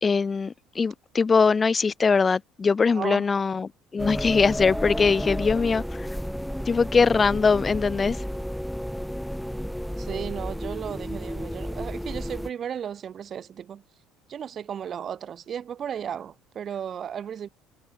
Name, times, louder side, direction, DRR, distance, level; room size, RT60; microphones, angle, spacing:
voice 1, 0.0-6.1 6.6-8.2, left 5 dB, 30° left, 1.6 m, -22 dB
voice 2, 2.9-3.2 10.0-13.8 14.3-17.5, right 8 dB, 45° right, 2.1 m, -34 dB
sound 1, 4.0-12.5, equal, ahead, 1.1 m, -32 dB
supercardioid pair, 80°, 0 cm